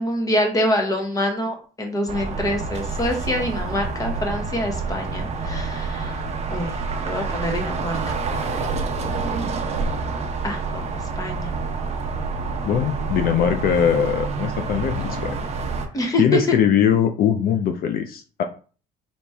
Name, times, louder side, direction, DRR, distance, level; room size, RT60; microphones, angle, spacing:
voice 1, 0.0-6.7 7.0-8.2 10.4-10.9 11.2-11.5 15.9-16.4, left 1 dB, 20° left, 3 dB, 1.2 m, -25 dB
sound 1, 2.1-15.9, right 4 dB, 40° right, 0.9 m, -27 dB
voice 2, 12.7-15.3 16.2-18.4, left 8 dB, 60° left, 5 dB, 0.6 m, -21 dB
4.3 x 3.0 x 3.5 m, 0.38 s
cardioid pair, 110°, 17 cm